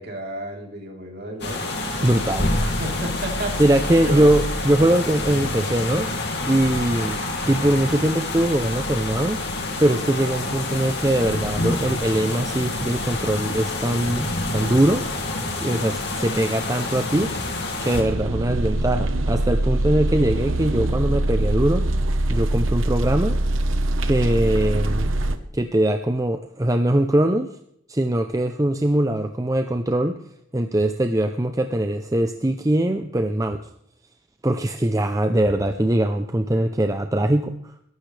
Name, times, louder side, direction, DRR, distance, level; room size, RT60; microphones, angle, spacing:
voice 1, 0.0-1.8 2.6-3.5 4.0-4.3, right 1 dB, 50° right, 0 dB, 3.6 m, -32 dB
sound 1, 1.4-18.0, left 2 dB, 50° left, 2.7 m, -27 dB
voice 2, 2.0-2.5 3.6-6.1 6.5-7.2 7.5-9.4 9.8-15.0 15.6-17.6 17.8-21.9 22.3-23.4 24.0-25.2 25.5-27.5 27.9-30.2 30.5-33.6 34.4-37.6, right 1 dB, 15° right, 7 dB, 0.5 m, -21 dB
sound 2, 17.9-25.4, right 1 dB, 75° right, 1.1 m, -23 dB
21.5 x 12.0 x 3.3 m, 0.72 s
head